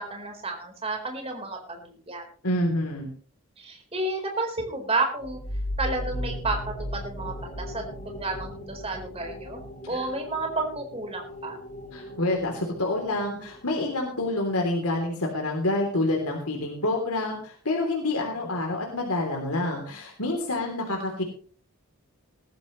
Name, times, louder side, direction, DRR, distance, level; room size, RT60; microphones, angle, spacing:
voice 1, 0.0-2.2 3.6-5.4 5.8-9.6 9.9-11.6, right 2 dB, 25° right, 2 dB, 4.4 m, -31 dB
voice 2, 2.4-3.1 9.9-10.0 11.9-21.2, left 2 dB, 85° left, 1 dB, 3.3 m, -27 dB
sound 1, 5.2-14.6, equal, 35° left, 3.4 m, -37 dB
18.5 x 14.0 x 3.2 m, 0.43 s
head